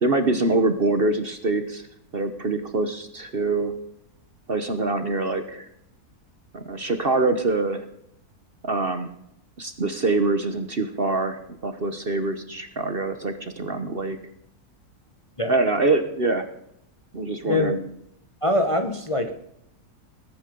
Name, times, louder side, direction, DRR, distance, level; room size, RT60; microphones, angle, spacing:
voice 1, 0.0-1.8 2.1-3.7 4.5-5.7 6.5-7.9 8.6-9.1 9.6-14.2 15.5-16.4 17.1-17.8, right 3 dB, 40° right, 8 dB, 1.1 m, -24 dB
voice 2, 18.4-19.3, left 1 dB, 25° left, 6 dB, 1.0 m, -23 dB
21.0 x 9.6 x 5.3 m, 0.77 s
omnidirectional pair, 1.7 m